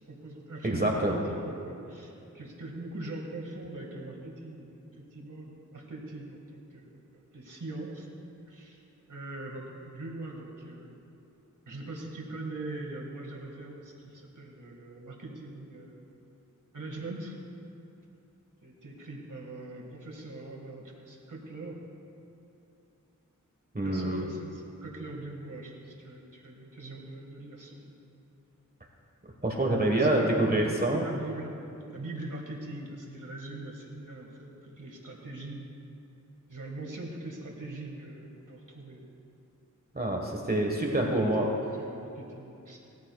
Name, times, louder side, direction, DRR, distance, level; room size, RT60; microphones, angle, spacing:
voice 1, 0.0-8.1 8.5-8.8 9.1-11.0 11.7-16.0 16.7-17.3 18.6-21.8 23.8-28.0 29.8-30.6 30.9-35.6 36.4-39.0 40.8-42.8, right 2 dB, 75° right, -1 dB, 2.0 m, -42 dB
voice 2, 0.6-1.2 23.7-24.2 29.4-31.0 39.9-41.5, right 1 dB, 30° right, 0 dB, 1.5 m, -26 dB
20.0 x 14.0 x 2.4 m, 2.8 s
wide cardioid pair, 70°, 31 cm